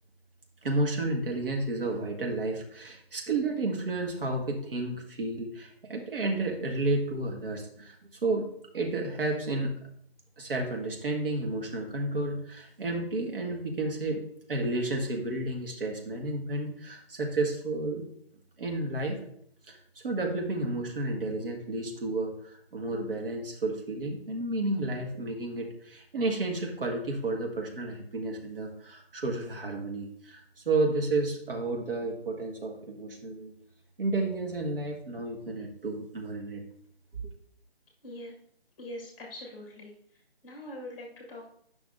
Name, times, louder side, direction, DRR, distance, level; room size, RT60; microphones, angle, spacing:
voice 1, 0.6-8.0 8.2-8.5 8.7-9.7 10.4-14.2 14.5-18.0 18.6-19.2 19.7-19.8 20.0-33.5 34.0-36.6, right 2 dB, 60° right, 1 dB, 1.7 m, -31 dB
voice 2, 38.8-39.9 40.4-41.5, left 1 dB, 15° left, -1 dB, 1.3 m, -42 dB
8.3 x 5.8 x 2.6 m, 0.67 s
figure-of-eight pair, 155°, 31 cm